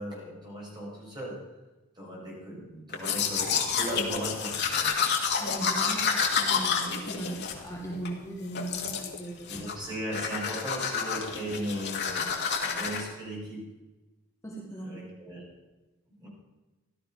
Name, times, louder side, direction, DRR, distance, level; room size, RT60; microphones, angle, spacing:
voice 1, 0.0-1.4 2.0-4.9 9.5-13.7 14.8-15.4 16.2-16.3, equal, 20° right, -4 dB, 6.0 m, -37 dB
Domestic sounds home sounds, 2.9-8.1 8.5-9.2 9.5-9.8 10.1-13.0, left 6 dB, 55° left, 2.1 m, -29 dB
voice 2, 5.4-9.5 14.4-15.0, right 1 dB, 15° left, -3 dB, 1.9 m, -38 dB
15.0 x 12.5 x 5.7 m, 1.1 s
head